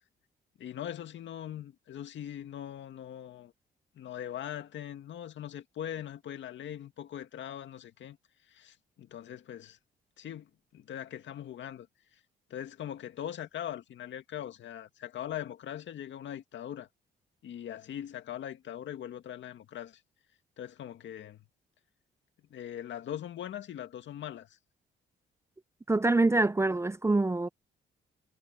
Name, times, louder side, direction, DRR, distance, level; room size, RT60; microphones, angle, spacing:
voice 1, 0.6-3.5 4.0-8.2 8.5-9.8 10.2-11.9 12.5-16.9 17.4-20.0 20.6-21.4 22.5-24.6, left 10 dB, 70° left, 2.0 m, -41 dB
voice 2, 25.9-27.5, right 2 dB, 15° right, 0.7 m, -25 dB
cardioid pair, 90°, 20 cm